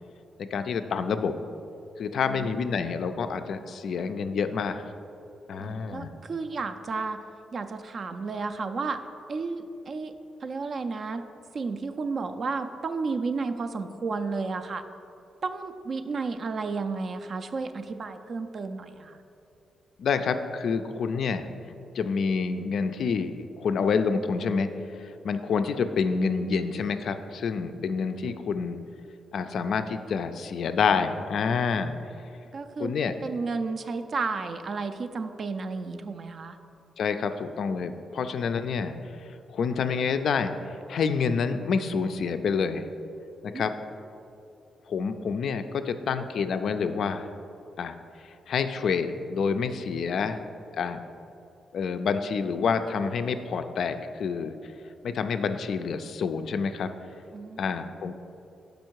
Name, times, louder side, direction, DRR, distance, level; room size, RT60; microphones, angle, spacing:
voice 1, 0.4-1.3 2.0-4.8 5.5-6.1 20.0-21.5 21.9-24.7 25.0-28.8 29.3-31.9 32.8-33.1 37.0-38.9 39.5-40.5 40.9-42.8 43.4-43.7 44.9-47.3 47.8-48.0 48.5-50.4 50.7-51.0 51.7-54.6 55.0-56.9 57.6-58.1, left 5 dB, 60° left, 9 dB, 0.3 m, -28 dB
voice 2, 2.2-2.6 5.6-7.2 7.5-9.0 9.3-10.1 10.4-11.2 11.5-14.8 15.4-19.2 32.5-32.9 33.2-36.6 38.2-38.3 43.5-43.6 57.3-57.7, right 4 dB, 40° right, 8 dB, 0.3 m, -32 dB
6.4 x 5.1 x 4.5 m, 2.7 s
wide cardioid pair, 170°, 0 cm